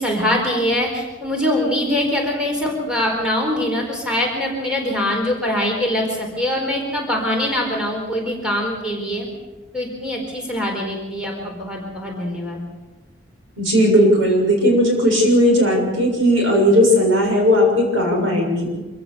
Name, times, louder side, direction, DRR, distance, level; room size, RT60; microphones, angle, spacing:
voice 1, 0.0-9.3 9.7-12.6, left 1 dB, 5° right, -1 dB, 4.4 m, -23 dB
voice 2, 13.6-18.7, equal, 80° right, 1 dB, 6.7 m, -16 dB
26.0 x 15.5 x 7.0 m, 1.2 s
head